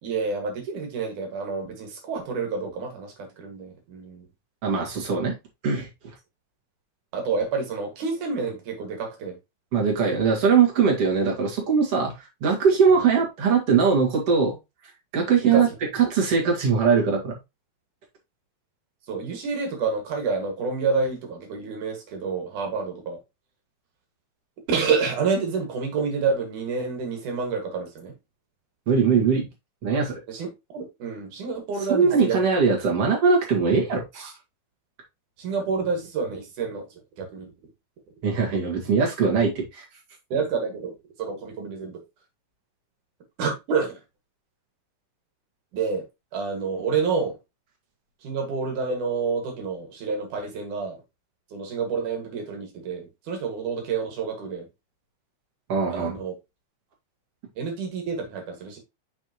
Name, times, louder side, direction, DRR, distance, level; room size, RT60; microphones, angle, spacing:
voice 1, 0.0-4.3 7.1-9.4 12.9-13.0 15.4-15.6 19.1-23.2 24.7-28.1 30.3-30.5 30.7-32.4 35.4-36.9 37.2-37.5 40.3-42.0 43.4-44.0 45.7-46.1 46.3-47.4 48.2-51.0 51.5-54.7 55.9-56.3 57.6-58.8, right 5 dB, 85° right, 3.5 m, -28 dB
voice 2, 4.6-5.4 5.6-5.9 9.7-12.2 12.4-14.6 15.1-15.7 15.9-17.4 28.9-29.5 29.8-30.2 31.9-34.3 38.2-39.9 55.7-56.1, right 5 dB, 55° right, 3.1 m, -21 dB
6.6 x 5.9 x 3.0 m
omnidirectional pair, 3.4 m